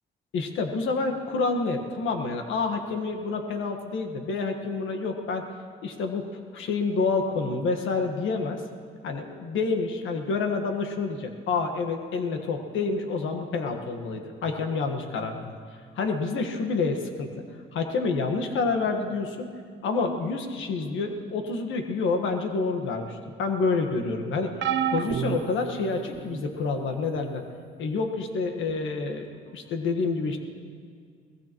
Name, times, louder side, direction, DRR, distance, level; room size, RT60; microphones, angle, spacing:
voice 1, 0.3-5.5 5.8-8.6 9.0-15.5 15.9-17.3 17.7-19.5 19.8-24.6 24.9-27.4 27.8-30.4, left 4 dB, 80° left, 4 dB, 1.5 m, -28 dB
sound 1, 24.6-26.4 27.1-27.4 28.7-28.8, right 9 dB, 65° right, 0.7 m, -30 dB
22.0 x 19.0 x 3.0 m, 2.1 s
cardioid pair, 90°, 20 cm